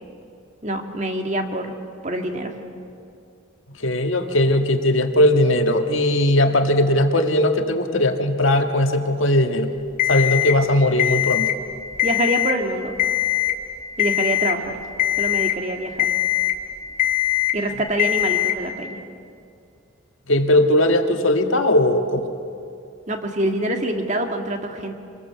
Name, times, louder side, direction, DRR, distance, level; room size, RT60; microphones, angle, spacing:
voice 1, 0.6-1.7 2.0-2.6 12.0-12.9 14.0-14.8 15.2-16.2 17.5-19.0 23.1-24.9, right 1 dB, 35° right, 4 dB, 1.9 m, -25 dB
voice 2, 3.8-9.7 10.1-11.5 20.3-22.3, left 1 dB, 75° left, 6 dB, 1.6 m, -19 dB
Alarm, 10.0-10.5 11.0-11.5 11.9-12.5 13.0-13.5 14.0-14.5 15.0-15.5 16.0-16.5 17.0-17.5 18.0-18.5, left 15 dB, 40° left, 1.2 m, -21 dB
26.5 x 21.5 x 7.0 m, 2.4 s
head